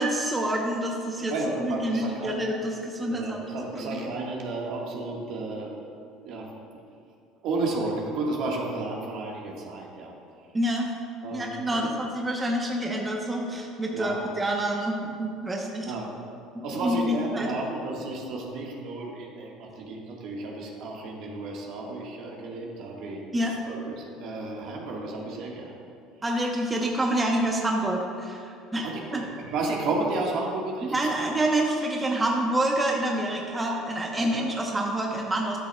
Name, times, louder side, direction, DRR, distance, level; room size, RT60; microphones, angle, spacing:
voice 1, 0.0-1.3 1.6-3.4 3.8-3.9 10.5-10.9 11.3-15.9 16.8-17.5 23.3-23.5 26.2-29.2 30.8-35.6, right 1 dB, 20° right, 0 dB, 0.8 m, -27 dB
voice 2, 1.3-2.5 3.1-6.8 7.4-10.1 11.2-11.9 13.9-14.3 15.8-16.2 16.6-23.2 23.6-25.8 28.8-31.1 34.2-34.5, right 2 dB, 65° right, -1 dB, 1.4 m, -32 dB
11.5 x 6.8 x 2.2 m, 2.4 s
supercardioid pair, 95°, 0 cm